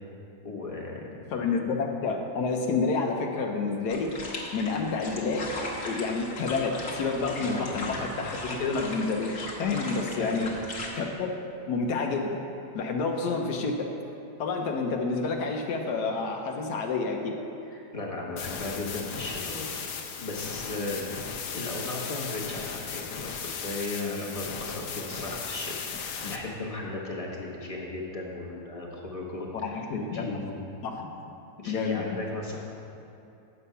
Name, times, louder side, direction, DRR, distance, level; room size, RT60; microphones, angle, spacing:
voice 1, 0.4-1.2 7.4-7.8 10.2-10.5 17.7-19.9 20.2-21.1 21.5-29.8 30.1-30.7 31.6-32.6, left 2 dB, 25° left, -2 dB, 1.0 m, -36 dB
voice 2, 1.3-4.1 4.5-5.6 5.8-10.5 10.9-11.3 11.7-12.4 12.7-13.9 14.4-17.4 29.6-30.3 30.8-31.1 31.6-32.0, left 4 dB, 85° left, 2 dB, 1.3 m, -29 dB
sound 1, 3.9-10.9, left 2 dB, 50° left, 1.4 m, -38 dB
sound 2, 18.4-26.4, left 6 dB, 65° left, 1.0 m, -36 dB
8.3 x 6.8 x 5.5 m, 2.7 s
omnidirectional pair, 1.7 m